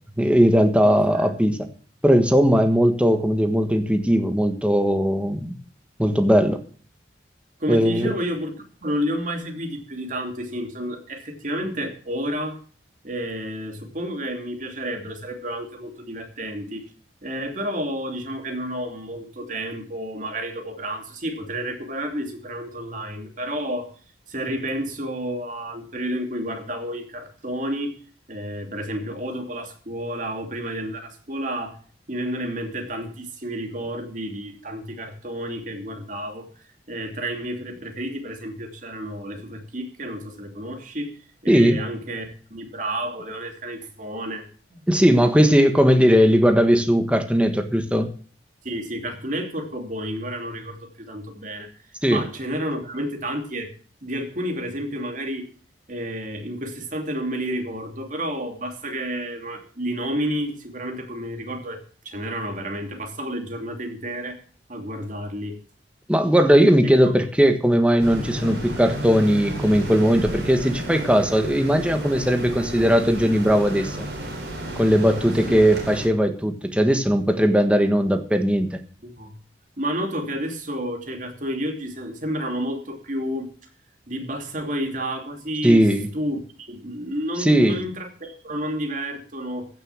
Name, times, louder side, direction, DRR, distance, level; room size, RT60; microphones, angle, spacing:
voice 1, 0.2-1.6 2.0-5.5 6.0-6.6 7.7-8.1 41.5-41.8 44.9-48.1 52.0-52.2 66.1-74.1 74.8-78.8 85.6-86.1 87.4-87.8, equal, 5° right, 6 dB, 1.4 m, -18 dB
voice 2, 0.8-1.3 7.6-8.5 8.8-12.6 13.0-16.9 17.2-23.9 24.3-27.9 28.3-31.8 32.1-36.5 36.9-44.8 48.6-51.7 52.1-53.7 54.0-55.5 55.9-61.8 62.0-64.4 64.7-65.6 75.5-75.6 79.0-79.3 79.8-83.5 84.1-85.8 86.1-89.7, equal, 45° right, 3 dB, 2.8 m, -30 dB
sound 1, 68.0-76.1, right 1 dB, 65° right, 4.9 m, -32 dB
15.5 x 6.8 x 7.3 m, 0.43 s
head